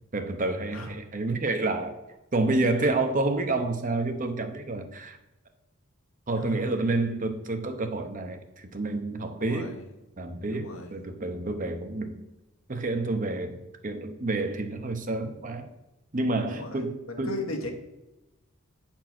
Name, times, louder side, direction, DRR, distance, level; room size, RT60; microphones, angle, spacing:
voice 1, 0.1-2.0 2.3-5.2 6.3-9.8 10.2-12.2 12.7-15.7 16.1-17.4, right 2 dB, 40° right, 7 dB, 0.8 m, -29 dB
voice 2, 6.3-6.8 9.4-9.8 10.5-10.9 16.5-17.7, left 2 dB, 80° left, 2 dB, 1.5 m, -37 dB
8.5 x 4.5 x 6.0 m, 1.0 s
head